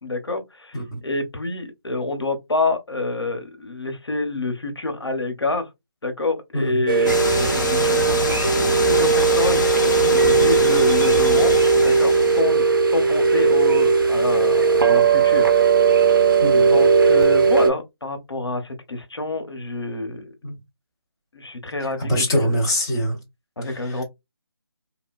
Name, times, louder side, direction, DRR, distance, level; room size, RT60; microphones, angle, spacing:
voice 1, 0.0-5.7 6.0-11.6 11.8-15.5 16.1-16.2 16.7-20.2 21.3-22.6 23.6-24.0, left 2 dB, 80° left, 0.8 m, -27 dB
voice 2, 6.5-6.8 7.4-7.5 16.4-16.8 20.4-20.6 22.0-23.2 23.6-24.0, equal, 10° left, 0.5 m, -24 dB
sound 1, 6.9-17.7, right 5 dB, 55° right, 0.5 m, -17 dB
sound 2, 7.1-12.4, left 3 dB, 45° left, 0.7 m, -26 dB
2.9 x 2.1 x 2.3 m
figure-of-eight pair, 160°, 13 cm